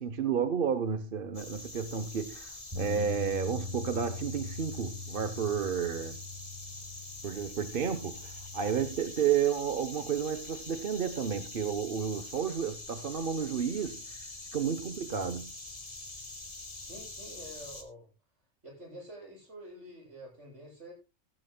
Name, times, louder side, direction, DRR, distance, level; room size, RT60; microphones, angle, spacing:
voice 1, 0.0-6.2 7.2-14.0 14.5-15.5, right 7 dB, 50° right, 1.0 m, -31 dB
sound 1, 1.3-17.8, left 2 dB, 30° left, 1.7 m, -45 dB
Bass guitar, 2.7-9.0, left 3 dB, 20° right, 5.4 m, -42 dB
voice 2, 16.7-18.1 18.6-20.9, equal, 70° right, 8.2 m, -48 dB
15.5 x 15.0 x 2.2 m
omnidirectional pair, 1.3 m